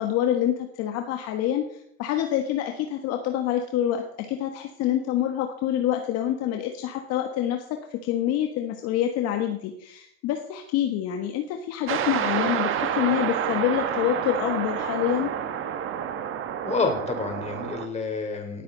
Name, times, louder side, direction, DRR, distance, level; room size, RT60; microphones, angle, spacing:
voice 1, 0.0-4.0 4.3-15.3, left 11 dB, 50° left, 4 dB, 1.6 m, -26 dB
sound 1, 11.9-17.9, right 9 dB, 40° right, 1.5 m, -28 dB
voice 2, 16.6-18.6, left 4 dB, 20° left, 4 dB, 3.8 m, -28 dB
18.5 x 8.5 x 4.0 m, 0.70 s
hypercardioid pair, 100°, 32 cm